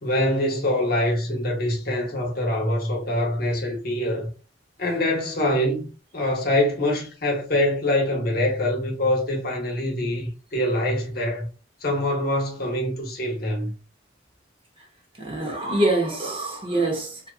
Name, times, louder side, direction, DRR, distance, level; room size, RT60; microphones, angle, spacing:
voice 1, 0.0-4.3 4.8-11.5 11.8-13.7, left 1 dB, 55° left, 0.9 m, -24 dB
voice 2, 15.2-17.3, right 2 dB, 30° right, 0.7 m, -25 dB
2.6 x 2.4 x 2.3 m
head